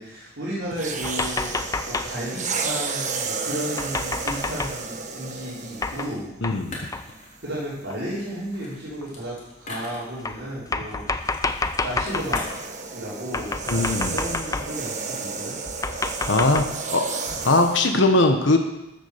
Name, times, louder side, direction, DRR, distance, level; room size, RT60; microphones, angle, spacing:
voice 1, 0.0-6.3 7.4-11.1 11.8-12.5 12.9-15.6, equal, 60° right, -8 dB, 4.6 m, -33 dB
sound 1, 0.7-6.2 7.1-7.3 11.2-17.9, right 4 dB, 40° right, 1.2 m, -32 dB
sound 2, 1.0-2.2 3.8-4.8 5.8-6.2 6.4-6.6 6.9-7.1 7.9-8.0 9.0-9.1 10.2-12.5 13.3-14.9 15.7-16.7, left 3 dB, 15° left, 0.6 m, -29 dB
voice 2, 6.4-6.8 13.7-14.2 16.3-17.1 17.4-18.6, left 2 dB, 65° left, 5 dB, 1.4 m, -20 dB
sound 3, 6.7-7.5 8.2-10.4 10.9-11.5 11.7-12.7, left 2 dB, 40° left, 3.4 m, -40 dB
13.5 x 7.4 x 7.0 m, 0.90 s
head